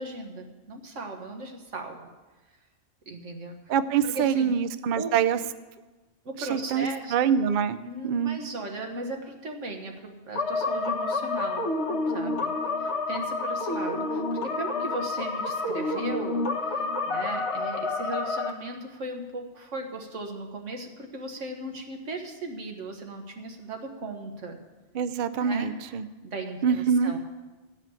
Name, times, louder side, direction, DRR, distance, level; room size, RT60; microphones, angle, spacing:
voice 1, 0.0-2.1 3.1-3.6 4.0-4.5 4.9-5.2 6.2-7.1 7.8-11.6 12.0-12.5 12.8-24.6 25.4-27.2, right 2 dB, 90° right, 3 dB, 1.7 m, -37 dB
voice 2, 3.7-5.4 6.4-8.4 24.9-26.1 26.6-27.1, right 7 dB, 55° right, 12 dB, 0.6 m, -25 dB
sound 1, 10.4-18.5, left 3 dB, 65° left, 1.4 m, -29 dB
15.0 x 5.0 x 8.8 m, 1.2 s
omnidirectional pair, 1.2 m